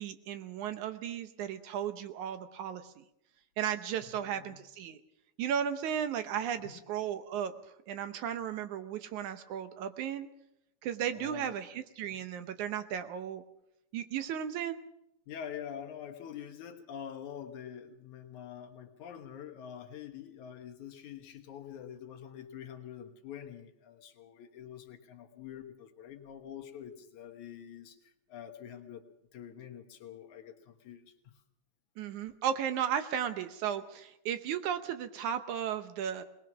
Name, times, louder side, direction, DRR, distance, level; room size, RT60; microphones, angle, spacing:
voice 1, 0.0-3.0 3.6-5.0 5.4-7.5 7.9-10.3 10.8-13.4 13.9-14.8 32.0-36.2, right 9 dB, 70° right, 10 dB, 2.2 m, -35 dB
voice 2, 4.0-4.6 6.6-6.8 11.1-11.7 12.1-12.2 15.3-28.0 28.3-29.0 29.3-31.1, left 9 dB, 70° left, 4 dB, 2.6 m, -46 dB
21.5 x 19.5 x 6.1 m, 0.82 s
omnidirectional pair, 3.8 m